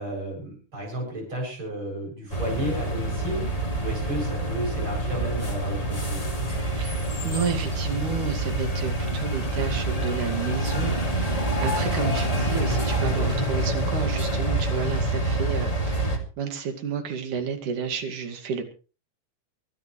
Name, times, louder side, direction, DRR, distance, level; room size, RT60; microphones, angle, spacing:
voice 1, 0.0-6.3, right 1 dB, 40° right, 1 dB, 8.6 m, -33 dB
sound 1, 2.3-16.2, right 1 dB, 10° left, 2.6 m, -26 dB
voice 2, 6.7-18.6, right 6 dB, 85° right, 7 dB, 3.8 m, -31 dB
23.0 x 13.5 x 3.3 m, 0.35 s
omnidirectional pair, 3.5 m